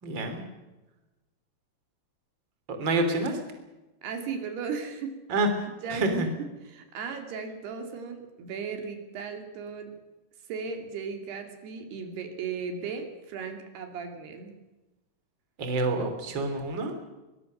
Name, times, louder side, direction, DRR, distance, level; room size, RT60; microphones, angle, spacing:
voice 1, 0.0-0.4 2.7-3.4 5.3-6.3 15.6-16.9, right 2 dB, 30° right, 6 dB, 3.5 m, -28 dB
voice 2, 4.0-5.1 5.8-9.9 10.5-14.5, right 5 dB, 80° right, 5 dB, 4.5 m, -36 dB
23.5 x 21.0 x 6.5 m, 1.1 s
omnidirectional pair, 4.6 m